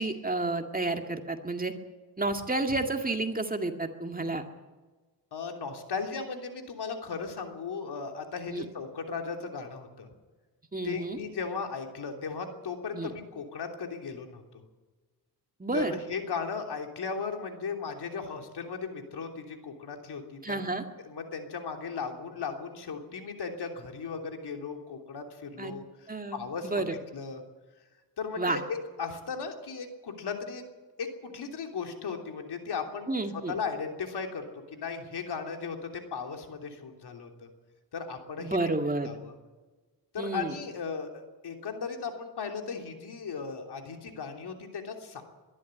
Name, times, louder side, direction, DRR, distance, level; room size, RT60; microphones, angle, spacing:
voice 1, 0.0-1.7 2.2-4.4 8.5-8.6 10.7-11.2 12.9-13.1 15.6-16.0 20.4-20.8 25.6-25.7 26.1-27.0 28.4-28.6 33.1-33.5 38.4-39.1 40.2-40.6, right 2 dB, 20° right, 5 dB, 2.1 m, -30 dB
voice 2, 5.3-10.1 10.8-14.4 15.7-20.7 21.0-26.8 27.1-27.4 28.2-30.6 31.0-37.5 37.9-38.6 39.0-39.3 40.1-45.2, left 5 dB, 70° left, 4 dB, 3.3 m, -36 dB
22.5 x 12.5 x 9.9 m, 1.3 s
cardioid pair, 90°, 41 cm